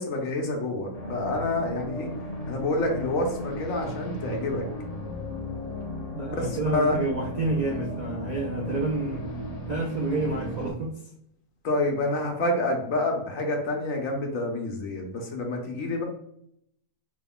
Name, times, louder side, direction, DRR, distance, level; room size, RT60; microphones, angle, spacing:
voice 1, 0.0-2.1 2.5-4.7 6.3-7.0 11.6-16.1, left 2 dB, 65° left, 2 dB, 1.2 m, -28 dB
sound 1, 0.9-10.7, left 1 dB, 35° left, 0.7 m, -35 dB
voice 2, 6.1-9.3 9.7-11.0, right 3 dB, 50° right, -3 dB, 0.5 m, -29 dB
5.4 x 3.7 x 2.3 m, 0.71 s
omnidirectional pair, 1.5 m